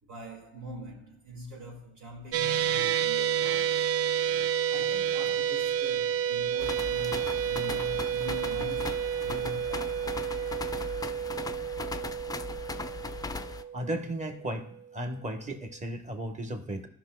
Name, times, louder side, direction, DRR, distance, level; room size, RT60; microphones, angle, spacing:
voice 1, 0.0-3.9 4.7-10.2, equal, 80° right, 2.5 m, -44 dB
sound 1, 2.3-14.7, right 9 dB, 50° right, 0.4 m, -30 dB
sound 2, 6.6-13.6, left 4 dB, 15° left, 0.4 m, -38 dB
voice 2, 13.7-14.7 14.9-16.9, right 1 dB, 25° right, 1.2 m, -35 dB
15.0 x 6.0 x 2.4 m
cardioid pair, 90°, 30 cm